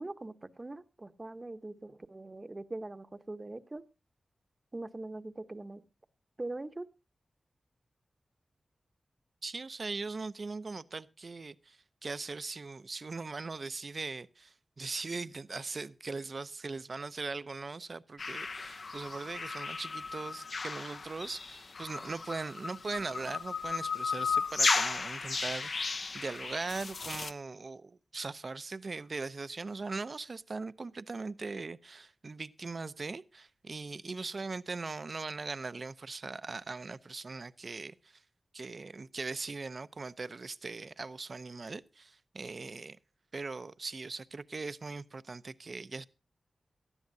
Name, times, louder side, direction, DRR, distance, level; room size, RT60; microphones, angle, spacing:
voice 1, 0.0-3.8 4.7-5.8 6.4-6.9, right 2 dB, 30° right, 0.9 m, -42 dB
voice 2, 9.4-38.2 38.5-43.0 43.3-46.1, right 3 dB, 50° right, 0.6 m, -40 dB
sound 1, 18.2-27.3, left 4 dB, 55° left, 0.7 m, -35 dB
18.0 x 13.0 x 2.7 m
wide cardioid pair, 85°, 0 cm